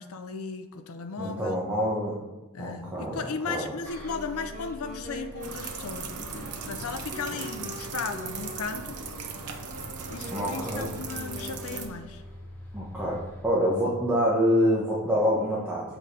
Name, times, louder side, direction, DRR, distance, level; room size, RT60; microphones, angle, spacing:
voice 1, 0.0-1.6 2.5-9.0 10.1-12.2, left 4 dB, 65° left, 8 dB, 0.6 m, -36 dB
voice 2, 1.2-2.2 2.6-3.2 3.5-3.6 10.3-10.9 12.7-13.2 13.4-15.8, equal, 10° right, -7 dB, 1.2 m, -26 dB
Bus, 3.8-13.4, left 1 dB, 10° left, 1.4 m, -46 dB
sound 1, 4.0-12.4, left 1 dB, 35° right, 1.0 m, -44 dB
sound 2, 5.4-11.9, right 5 dB, 90° right, 0.9 m, -38 dB
7.1 x 5.1 x 4.2 m, 1.1 s
head